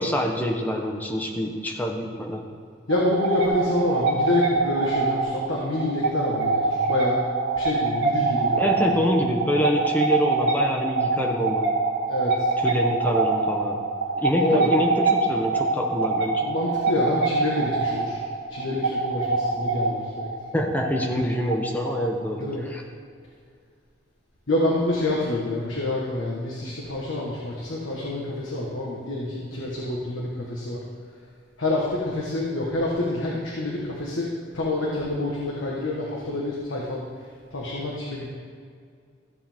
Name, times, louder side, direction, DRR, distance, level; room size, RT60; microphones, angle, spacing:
voice 1, 0.0-2.4 8.6-11.7 12.6-13.8 14.2-16.5 20.5-22.8, equal, 10° left, 1 dB, 0.9 m, -26 dB
voice 2, 2.9-7.2 7.6-9.0 12.1-12.5 14.4-14.7 16.4-18.2 18.5-20.3 22.4-22.6 24.5-30.8 31.6-34.3 34.5-37.0 37.5-38.3, left 1 dB, 75° left, -4 dB, 1.4 m, -27 dB
sound 1, 2.9-22.3, right 3 dB, 65° right, 1.6 m, -25 dB
14.0 x 7.7 x 3.6 m, 2.2 s
head